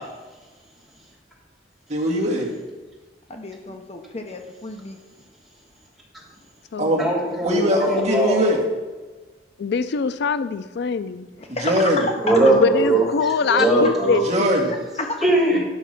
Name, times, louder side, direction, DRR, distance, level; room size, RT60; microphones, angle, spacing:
voice 1, 1.9-2.5 6.8-7.0 7.4-8.6 11.6-12.0 14.2-14.7, equal, 40° right, -1 dB, 1.7 m, -21 dB
voice 2, 3.3-5.0 11.4-12.1 14.7-15.2, left 2 dB, 35° left, 4 dB, 0.8 m, -31 dB
voice 3, 7.0-8.5 12.2-13.0 13.5-14.2 15.2-15.6, right 2 dB, ahead, -6 dB, 3.2 m, -19 dB
voice 4, 9.6-11.3 12.5-14.2, left 5 dB, 65° left, 13 dB, 0.4 m, -23 dB
10.5 x 6.0 x 5.8 m, 1.2 s
head